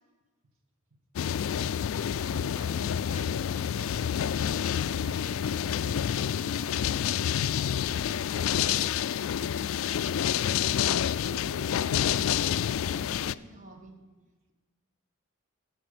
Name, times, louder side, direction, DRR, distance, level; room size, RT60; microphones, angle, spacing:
sound 1, 1.2-13.4, left 9 dB, 70° left, 0.3 m, -28 dB
voice 1, 2.1-4.2, equal, 75° right, 5 dB, 1.7 m, -49 dB
voice 2, 10.4-12.5 12.8-14.0, right 1 dB, 35° right, 3 dB, 1.8 m, -50 dB
15.0 x 5.7 x 7.9 m, 1.3 s
head